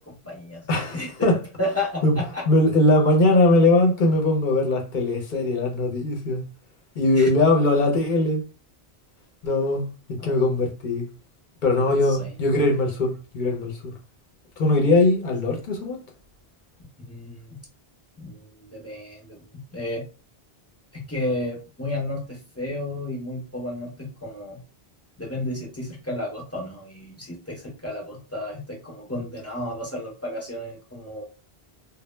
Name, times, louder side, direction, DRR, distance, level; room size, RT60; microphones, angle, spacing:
voice 1, 0.0-0.7 0.9-1.3 1.6-2.5 7.2-7.3 10.2-10.4 12.0-12.3 17.1-17.6 18.2-20.1 20.9-24.6 25.2-31.2, left 1 dB, 20° left, 0.5 m, -32 dB
voice 2, 0.7-1.4 2.0-2.2 2.5-6.4 7.0-8.4 9.4-11.1 11.6-13.9 14.6-16.0, left 2 dB, 55° left, 0.7 m, -21 dB
2.1 x 2.0 x 3.1 m
omnidirectional pair, 1.1 m